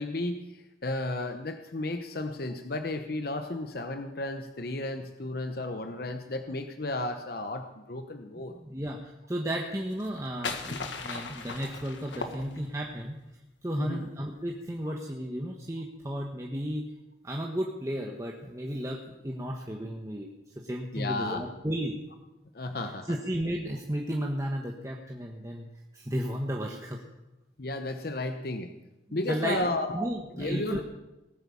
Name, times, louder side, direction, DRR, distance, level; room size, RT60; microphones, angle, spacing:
voice 1, 0.0-8.5 10.7-10.8 13.8-14.0 16.1-16.2 20.9-21.4 22.5-23.1 27.6-28.7 29.1-29.9 30.4-30.8, left 2 dB, 55° left, 7 dB, 0.9 m, -33 dB
voice 2, 8.6-13.2 13.6-16.8 17.2-20.3 20.6-22.0 23.0-25.7 25.9-27.0 29.1-29.6 29.9-30.8, equal, 15° right, 0 dB, 1.2 m, -33 dB
sound 1, 9.9-13.0, left 4 dB, 80° left, 1.7 m, -38 dB
19.0 x 9.0 x 7.0 m, 0.98 s
head